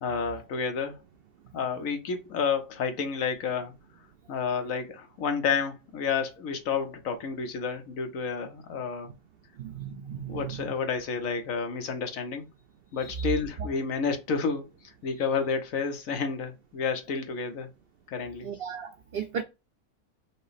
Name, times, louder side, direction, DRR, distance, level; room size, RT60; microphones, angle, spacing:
voice 1, 0.0-1.0 1.5-3.7 4.3-9.1 10.3-12.4 12.9-14.7 15.0-17.7 18.1-18.5, left 5 dB, 65° left, 1.1 m, -30 dB
voice 2, 9.6-10.7 13.0-13.3 18.4-19.4, right 7 dB, 80° right, 0.5 m, -36 dB
5.7 x 2.0 x 4.0 m
omnidirectional pair, 1.6 m